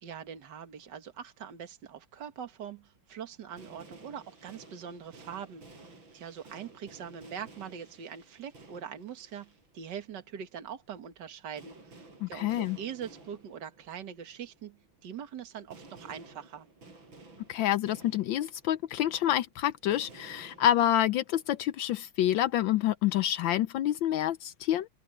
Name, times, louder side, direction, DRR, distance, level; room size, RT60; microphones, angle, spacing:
voice 1, 0.0-16.7, right 8 dB, 65° right, 2.2 m, -43 dB
sound 1, 3.0-3.1 3.3-21.7, right 3 dB, 85° right, 6.1 m, -54 dB
voice 2, 12.2-12.8 17.5-24.9, left 12 dB, 80° left, 1.4 m, -27 dB
open air
omnidirectional pair, 2.1 m